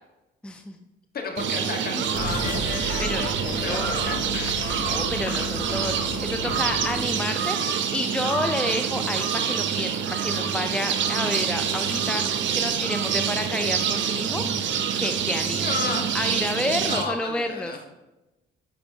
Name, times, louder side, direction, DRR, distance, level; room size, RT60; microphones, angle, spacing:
voice 1, 0.4-0.8 3.0-4.0 4.8-15.7 16.1-17.7, left 2 dB, 5° left, 6 dB, 0.5 m, -30 dB
voice 2, 1.1-2.4 3.6-4.2 15.5-16.1 16.9-17.8, left 4 dB, 50° left, 2 dB, 1.3 m, -31 dB
sound 1, 1.4-17.0, right 7 dB, 70° right, 0.6 m, -26 dB
sound 2, 2.1-7.1, left 6 dB, 80° left, 0.7 m, -34 dB
8.6 x 5.3 x 2.8 m, 1.0 s
cardioid pair, 90°, 20 cm